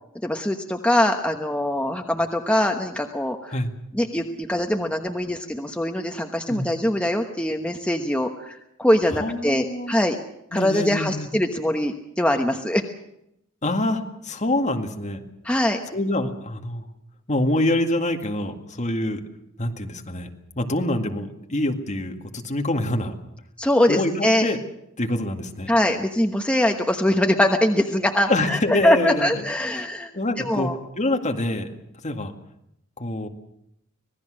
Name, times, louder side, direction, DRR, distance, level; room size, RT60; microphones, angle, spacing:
voice 1, 0.2-3.5 3.9-10.2 10.5-12.8 15.4-15.8 23.6-24.4 25.7-30.1 30.4-30.8, left 1 dB, 5° left, 3 dB, 1.1 m, -22 dB
voice 2, 9.2-10.0 10.5-11.3 13.6-15.2 15.9-16.9 17.3-19.2 19.6-20.3 20.6-23.1 23.9-24.6 25.0-25.7 28.3-29.4 29.8-29.9 30.1-30.7 31.0-31.7 32.0-32.3 33.0-33.3, left 1 dB, 35° left, 4 dB, 2.1 m, -25 dB
25.5 x 19.0 x 6.4 m, 0.80 s
head